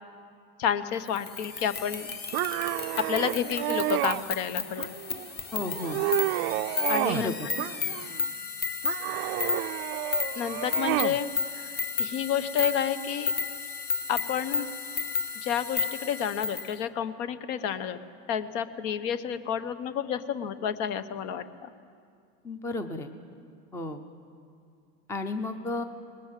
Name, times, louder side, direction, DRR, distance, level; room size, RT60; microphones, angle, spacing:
voice 1, 0.6-2.2 3.0-5.0 6.9-7.6 10.3-13.3 14.1-14.7 15.4-18.0 18.3-21.7, left 8 dB, 60° left, 12 dB, 1.1 m, -30 dB
sound 1, 1.1-16.7, left 5 dB, 25° left, 1.0 m, -33 dB
sound 2, 2.3-4.2 4.8-5.3 5.7-7.3 7.6-8.3 8.8-11.2, right 18 dB, 55° right, 0.5 m, -30 dB
voice 2, 5.5-6.0 7.1-7.5 22.4-23.1 23.7-24.0 25.1-25.8, left 2 dB, 5° left, 9 dB, 0.5 m, -33 dB
25.5 x 20.0 x 7.5 m, 2.3 s
supercardioid pair, 160°, 40 cm